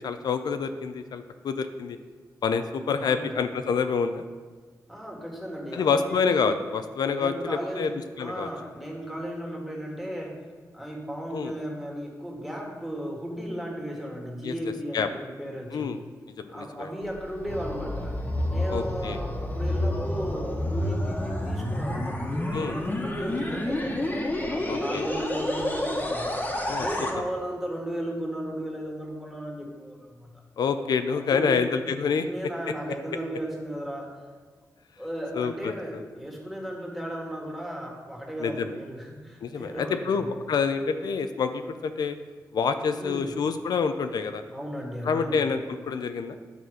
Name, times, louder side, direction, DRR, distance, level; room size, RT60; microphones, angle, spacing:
voice 1, 0.0-2.0 2.4-4.2 5.7-7.9 8.2-8.5 11.3-11.5 14.4-14.5 14.9-15.1 15.7-16.0 16.4-16.9 18.7-19.2 22.5-22.7 24.7-25.1 26.7-26.9 30.6-32.3 35.3-36.0 38.4-38.8 39.4-42.1 42.5-44.4 45.0-45.6 45.9-46.4, left 5 dB, 80° left, 8 dB, 0.5 m, -27 dB
voice 2, 3.0-3.4 4.9-6.4 7.2-10.4 10.7-16.0 16.5-18.2 18.5-24.1 24.5-26.4 26.8-30.4 31.1-31.6 32.2-34.1 35.0-40.3 43.0-43.4 44.5-45.5, equal, ahead, -2 dB, 1.7 m, -35 dB
sound 1, 17.0-27.1, left 1 dB, 25° left, 1.3 m, -29 dB
9.4 x 4.2 x 6.3 m, 1.5 s
wide cardioid pair, 110°, 7 cm